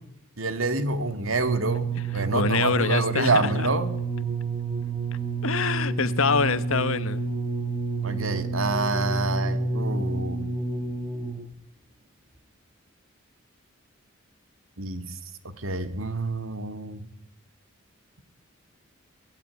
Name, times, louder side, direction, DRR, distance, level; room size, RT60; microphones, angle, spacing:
voice 1, 0.4-3.9 8.0-10.5 14.8-15.1 15.6-17.1, right 3 dB, 80° right, 9 dB, 2.4 m, -27 dB
sound 1, 1.4-11.5 12.3-12.4, right 3 dB, 20° right, 7.6 m, -29 dB
voice 2, 2.1-3.7 5.4-7.2, left 4 dB, 80° left, 14 dB, 1.2 m, -25 dB
22.5 x 18.0 x 9.7 m, 0.78 s
head